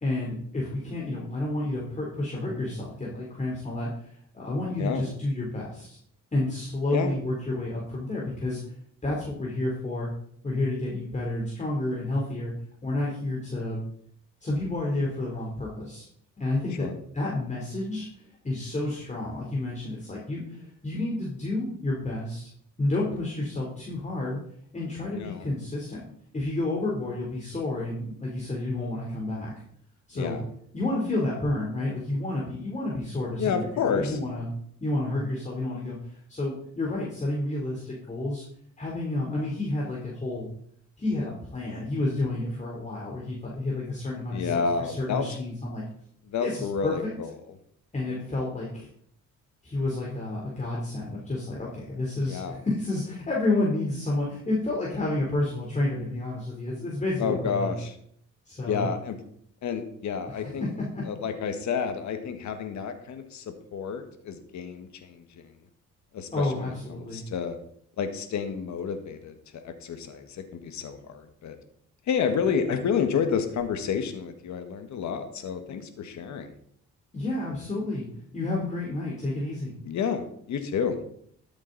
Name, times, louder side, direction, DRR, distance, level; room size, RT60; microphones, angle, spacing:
voice 1, 0.0-6.0 6.3-8.6 9.0-10.1 10.4-12.5 12.8-13.8 14.4-16.1 16.4-16.9 17.1-18.1 18.4-22.5 22.8-24.4 24.7-26.1 26.3-29.5 30.1-30.4 30.7-34.5 34.8-38.4 38.8-40.5 41.0-45.8 46.4-47.1 47.9-48.9 49.6-57.8 58.5-58.9 60.3-60.7 60.9-61.0 66.3-67.2 77.1-78.1 78.3-79.7, left 2 dB, 25° left, -4 dB, 3.6 m, -30 dB
voice 2, 25.1-25.5 30.2-30.4 33.4-34.2 44.3-45.3 46.3-47.3 52.3-52.6 57.2-57.9 58.7-59.2 59.6-60.7 61.0-65.4 66.1-67.6 68.0-71.6 72.1-76.5 79.9-81.0, left 6 dB, 70° left, 8 dB, 1.6 m, -30 dB
13.0 x 8.0 x 4.1 m, 0.65 s
cardioid pair, 90°, 30 cm